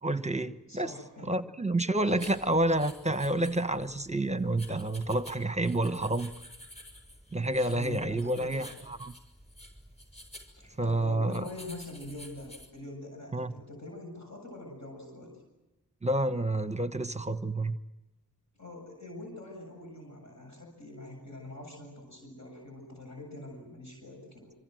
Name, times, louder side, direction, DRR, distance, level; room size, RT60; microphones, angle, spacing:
voice 1, 0.0-0.9 1.3-6.3 7.3-9.1 10.8-11.4 13.3-13.5 16.0-17.8, right 1 dB, 20° right, 10 dB, 1.1 m, -29 dB
voice 2, 0.7-1.4 2.2-2.3 7.6-8.7 10.6-15.3 18.6-24.5, left 1 dB, 50° left, 0 dB, 7.7 m, -44 dB
sound 1, 2.1-12.7, equal, 20° left, 7.1 m, -51 dB
27.5 x 25.0 x 7.8 m, 1.0 s
cardioid pair, 55°, 34 cm